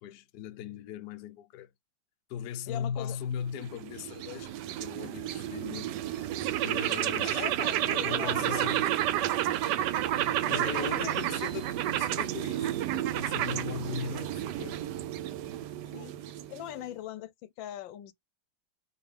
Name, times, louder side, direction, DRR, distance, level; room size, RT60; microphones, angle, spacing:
voice 1, 0.0-1.7 2.3-6.3 6.6-7.5 8.0-8.9 10.4-14.9, left 8 dB, 70° left, 1.1 m, -39 dB
voice 2, 2.7-3.2 7.2-8.7 10.4-11.2 15.9-18.1, left 13 dB, 85° left, 1.4 m, -41 dB
sound 1, 3.4-16.8, right 12 dB, 75° right, 1.1 m, -31 dB
5.3 x 2.7 x 3.2 m
omnidirectional pair, 2.0 m